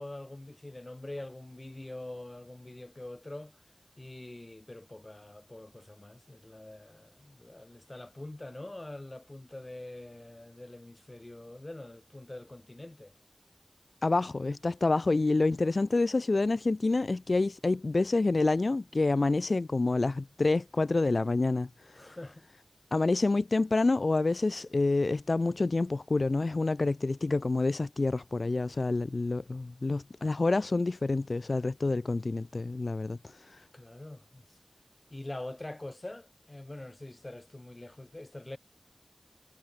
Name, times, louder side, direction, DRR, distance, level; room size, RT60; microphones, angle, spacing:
voice 1, 0.0-3.5 4.0-13.1 21.9-22.5 33.7-34.4 35.1-38.6, left 1 dB, 40° left, 2.9 m, -44 dB
voice 2, 14.0-22.0 22.9-33.6, left 3 dB, 75° left, 0.4 m, -28 dB
wide cardioid pair, 50°, 0 cm